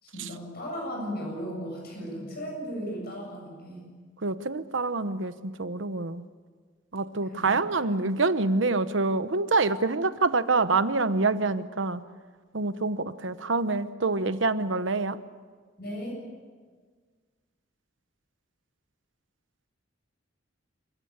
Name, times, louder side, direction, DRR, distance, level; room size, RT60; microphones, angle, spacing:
voice 1, 0.0-3.9 7.3-7.7 15.8-16.2, equal, 55° left, -1 dB, 7.5 m, -36 dB
voice 2, 4.2-6.2 6.9-12.0 12.5-15.2, right 3 dB, 75° right, 12 dB, 1.0 m, -26 dB
27.5 x 16.0 x 8.9 m, 1.5 s
head